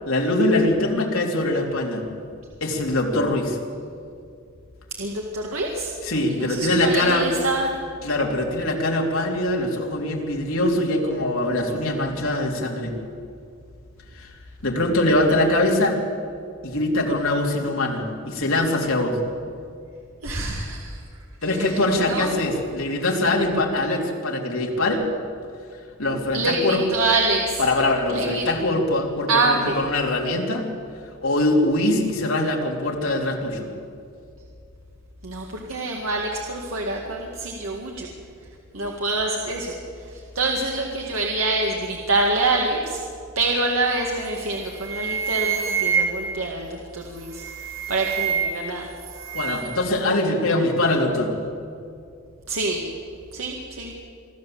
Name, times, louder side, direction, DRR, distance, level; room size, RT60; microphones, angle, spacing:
voice 1, 0.1-2.0 2.6-3.6 6.0-7.3 8.0-12.9 14.2-14.3 14.6-16.0 16.6-19.2 21.4-25.0 26.0-26.8 27.6-30.7 31.2-33.7 49.3-51.3, left 1 dB, 75° left, 0 dB, 3.2 m, -22 dB
voice 2, 5.0-5.9 6.3-7.8 20.2-21.0 21.5-22.3 26.3-27.6 28.1-28.5 29.3-29.8 35.2-38.1 38.7-39.8 40.1-43.0 43.4-47.4 47.9-48.9 52.5-52.8 53.3-53.9, right 2 dB, 85° right, 0 dB, 2.0 m, -26 dB
sound 1, 44.2-44.5 44.8-46.4 47.2-48.7 49.0-49.8, right 6 dB, 70° right, 3.2 m, -26 dB
25.0 x 13.5 x 7.8 m, 2.4 s
head